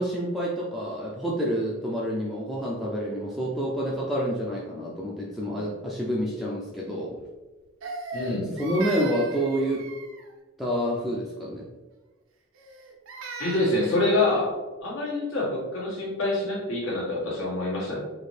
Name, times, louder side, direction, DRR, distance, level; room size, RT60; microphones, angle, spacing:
voice 1, 0.0-7.2 8.6-9.9 10.6-11.6, equal, ahead, -5 dB, 0.4 m, -28 dB
Crying sobbing, 7.8-10.3 12.6-14.0, right 3 dB, 75° right, 0.5 m, -38 dB
voice 2, 8.1-8.5 13.4-14.5 14.8-18.0, left 2 dB, 75° left, -5 dB, 1.4 m, -26 dB
4.1 x 2.7 x 3.2 m, 1.2 s
head